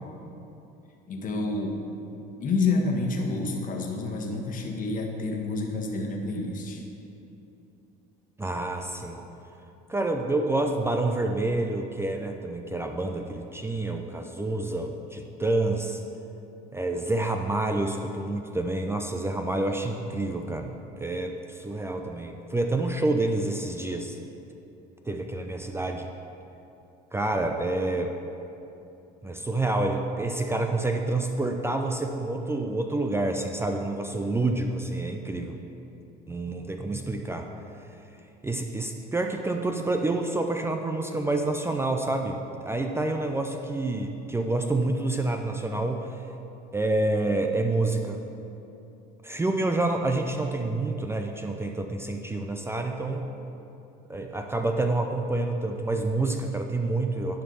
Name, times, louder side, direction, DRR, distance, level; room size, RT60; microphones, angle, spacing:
voice 1, 1.1-1.8 2.4-6.8, left 3 dB, 40° left, 2 dB, 1.4 m, -28 dB
voice 2, 8.4-9.2 9.9-16.0 16.7-24.2 25.1-26.1 27.1-28.1 29.2-35.6 36.3-37.5 38.4-46.2 46.7-48.2 49.2-53.3 54.1-57.4, right 2 dB, 10° right, 4 dB, 0.5 m, -28 dB
11.0 x 4.7 x 5.5 m, 2.8 s
hypercardioid pair, 80°, 20 cm